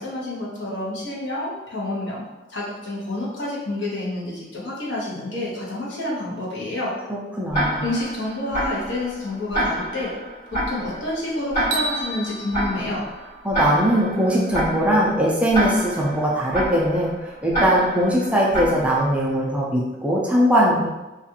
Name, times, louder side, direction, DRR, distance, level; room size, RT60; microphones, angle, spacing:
voice 1, 0.0-2.2 2.5-6.9 7.8-10.1 10.5-13.0, left 1 dB, 75° left, -5 dB, 0.9 m, -29 dB
voice 2, 7.1-7.9 13.4-17.1 17.4-20.9, equal, 5° right, -4 dB, 0.3 m, -20 dB
Tick-tock, 7.5-19.4, equal, 45° left, 1.4 m, -28 dB
sound 1, 11.7-14.0, right 3 dB, 75° right, 0.6 m, -32 dB
2.5 x 2.3 x 2.8 m, 1.1 s
head